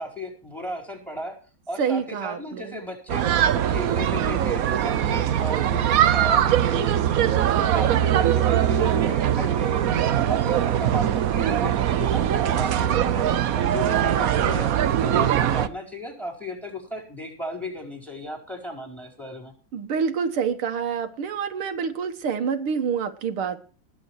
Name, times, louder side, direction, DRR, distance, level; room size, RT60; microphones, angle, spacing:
voice 1, 0.0-1.4 1.7-3.3 3.5-7.2 7.6-9.8 10.1-19.5, left 1 dB, ahead, 4 dB, 4.3 m, -35 dB
voice 2, 1.8-2.8 19.7-23.6, right 6 dB, 85° right, 7 dB, 2.2 m, -27 dB
sound 1, 3.1-15.7, right 10 dB, 65° right, 0.9 m, -21 dB
20.5 x 8.0 x 4.6 m, 0.38 s
omnidirectional pair, 2.3 m